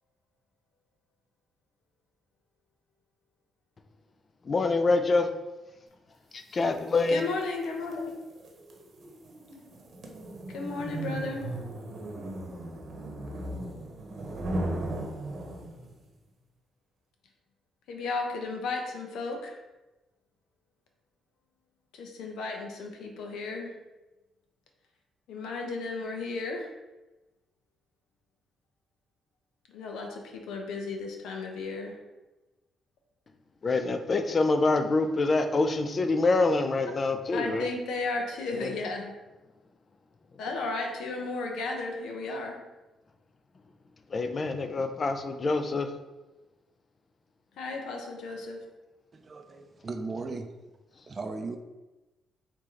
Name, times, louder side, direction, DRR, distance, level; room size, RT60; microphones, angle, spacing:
voice 1, 4.5-5.3 6.3-7.2 33.6-37.7 38.5-38.7 44.1-45.9, left 3 dB, 40° left, 7 dB, 0.4 m, -26 dB
sound 1, 6.6-16.0, right 1 dB, 50° right, 0.9 m, -37 dB
voice 2, 7.1-8.2 10.5-11.5 17.9-19.5 21.9-23.7 25.3-26.7 29.7-32.0 37.3-39.1 40.4-42.6 47.6-48.6, left 3 dB, 80° left, 2 dB, 0.8 m, -34 dB
voice 3, 49.1-50.5 51.1-51.6, right 3 dB, 35° right, 5 dB, 0.5 m, -37 dB
4.7 x 2.8 x 3.7 m, 1.1 s
cardioid pair, 90°, 0 cm